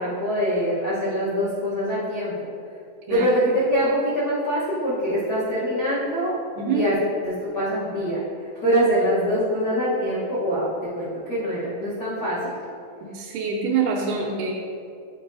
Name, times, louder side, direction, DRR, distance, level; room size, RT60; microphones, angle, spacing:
voice 1, 0.0-2.3 3.1-6.4 6.7-7.0 7.2-8.2 8.6-12.5, equal, 75° left, -9 dB, 0.9 m, -24 dB
voice 2, 6.6-6.9 13.0-14.5, right 5 dB, 85° right, -5 dB, 2.2 m, -25 dB
8.6 x 4.6 x 2.5 m, 2.4 s
omnidirectional pair, 3.5 m